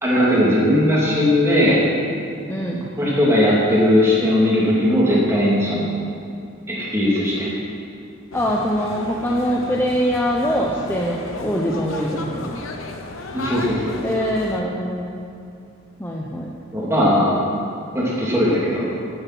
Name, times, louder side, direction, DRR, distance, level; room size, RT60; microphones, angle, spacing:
voice 1, 0.0-1.8 3.0-6.0 6.7-7.5 13.3-14.0 16.7-17.3 17.9-19.0, left 1 dB, 15° right, -6 dB, 2.6 m, -18 dB
voice 2, 2.5-2.8 8.3-12.6 14.0-15.2 16.0-16.5, equal, 10° left, -2 dB, 0.7 m, -23 dB
sound 1, 8.3-14.6, left 2 dB, 85° left, 1.0 m, -34 dB
14.0 x 7.1 x 6.0 m, 2.4 s
head